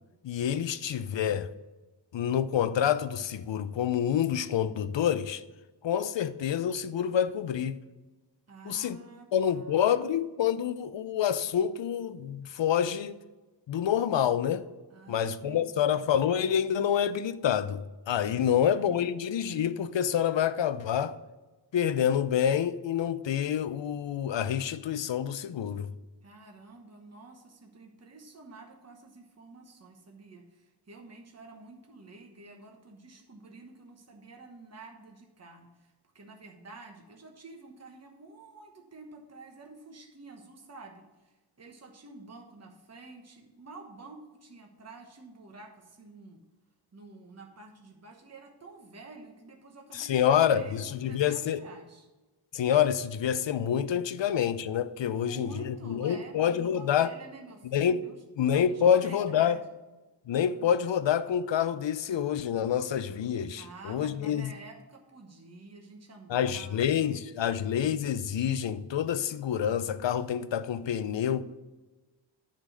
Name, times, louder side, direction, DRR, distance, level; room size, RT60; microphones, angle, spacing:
voice 1, 0.2-1.5 2.1-5.4 5.8-7.8 8.7-9.0 9.3-13.1 13.7-14.6 15.1-21.2 21.7-25.9 49.9-51.6 52.5-57.1 57.6-58.1 58.4-59.6 60.3-64.5 66.3-71.4, left 9 dB, 70° left, 0.5 m, -27 dB
voice 2, 8.5-10.0 14.9-16.0 18.4-19.1 26.2-46.4 46.9-52.1 54.2-54.3 55.0-58.2 58.7-59.6 63.6-67.2, right 3 dB, 35° right, 1.1 m, -50 dB
9.7 x 4.0 x 6.2 m
wide cardioid pair, 100°, 46 cm